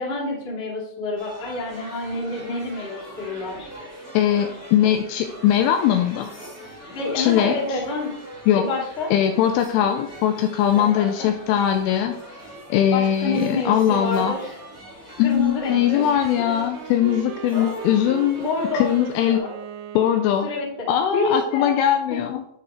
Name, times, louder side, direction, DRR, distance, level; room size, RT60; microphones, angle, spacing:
voice 1, 0.0-3.7 6.9-8.1 8.5-9.1 10.7-11.3 12.9-14.5 15.2-16.5 17.5-18.9 19.3-19.5 20.4-21.8 22.1-22.3, left 2 dB, 30° left, -6 dB, 1.2 m, -28 dB
sound 1, 1.2-19.4, equal, 20° right, 0.4 m, -42 dB
voice 2, 4.1-6.3 7.2-7.6 8.5-8.7 9.1-12.2 12.7-14.3 15.2-18.4 18.7-19.5 20.0-20.5 20.9-22.4, left 10 dB, 85° left, 6 dB, 2.9 m, -20 dB
Wind instrument woodwind instrument, 15.6-20.8, right 10 dB, 90° right, 2.6 m, -38 dB
12.0 x 4.5 x 3.5 m, 0.73 s
omnidirectional pair, 6.0 m